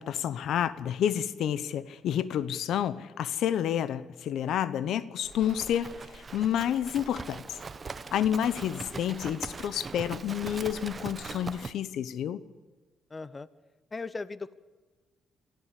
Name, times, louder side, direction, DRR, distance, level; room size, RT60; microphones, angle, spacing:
voice 1, 0.0-7.6 8.1-12.4, left 10 dB, 75° left, 17 dB, 0.8 m, -29 dB
Livestock farm animals working animals, 5.3-11.7, right 4 dB, 35° right, 0.9 m, -41 dB
voice 2, 13.1-13.5 13.9-14.6, left 3 dB, 25° left, 17 dB, 0.8 m, -38 dB
24.0 x 14.5 x 8.3 m, 1.2 s
cardioid pair, 90°, 0 cm